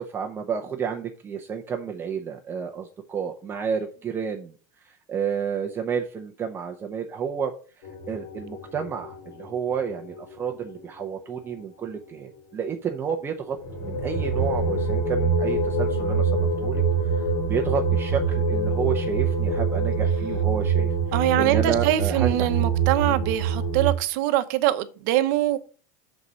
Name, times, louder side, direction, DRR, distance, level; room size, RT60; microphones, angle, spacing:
voice 1, 0.0-4.5 4.8-20.9 21.4-22.7 23.1-23.2, right 7 dB, 25° right, 0.7 m, -31 dB
sound 1, 7.8-11.0 13.5-23.9, right 4 dB, 70° left, 2.7 m, -25 dB
voice 2, 21.1-25.6, right 13 dB, 65° right, 0.8 m, -23 dB
6.5 x 4.2 x 6.2 m
supercardioid pair, 140°, 10 cm